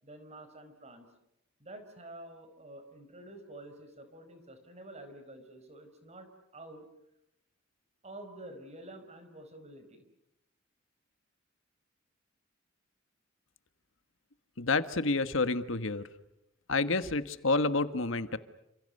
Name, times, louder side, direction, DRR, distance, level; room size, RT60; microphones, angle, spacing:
voice 1, 0.0-1.1 1.6-6.9 8.0-10.1, right 1 dB, 35° right, 8 dB, 4.9 m, -49 dB
voice 2, 14.6-16.0 16.7-18.4, left 3 dB, 75° left, 11 dB, 1.4 m, -29 dB
29.5 x 27.5 x 6.7 m, 0.82 s
head